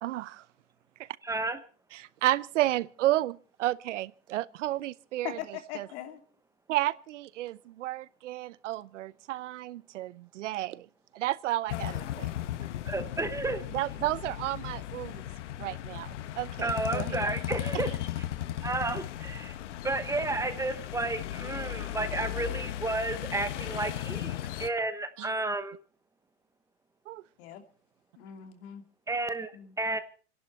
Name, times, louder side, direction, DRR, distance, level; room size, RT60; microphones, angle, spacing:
voice 1, 0.0-0.5 1.0-1.1 1.9-5.4 5.7-5.9 6.7-10.9 11.1-12.3 13.7-15.2 15.6-17.2 25.2-25.5 27.1-27.2, right 15 dB, 85° right, 0.9 m, -32 dB
voice 2, 1.2-1.6 12.8-13.6 16.6-17.9 18.6-19.6 19.8-25.8 29.1-29.5 29.8-30.0, right 2 dB, 10° right, 1.1 m, -32 dB
voice 3, 5.2-6.2 27.4-27.6 28.2-28.8 29.5-29.8, left 11 dB, 60° left, 2.8 m, -40 dB
sound 1, 11.7-24.7, left 13 dB, 85° left, 1.2 m, -36 dB
29.0 x 11.0 x 4.4 m
supercardioid pair, 140°, 35 cm